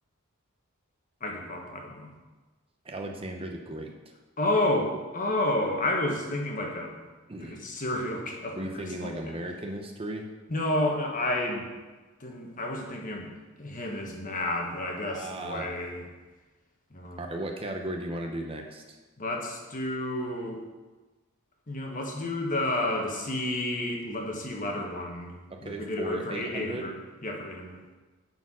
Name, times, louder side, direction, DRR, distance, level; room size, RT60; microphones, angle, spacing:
voice 1, 1.2-2.1 4.4-6.9 7.4-9.4 10.5-11.7 12.2-16.0 16.9-17.2 19.2-20.6 21.7-25.4 25.6-27.8, left 1 dB, 40° left, 0 dB, 1.4 m, -31 dB
voice 2, 2.8-3.9 7.3-7.6 8.5-10.3 15.1-15.7 17.2-19.0 25.5-26.9, right 1 dB, 25° right, 3 dB, 0.7 m, -36 dB
9.7 x 4.6 x 6.1 m, 1.2 s
head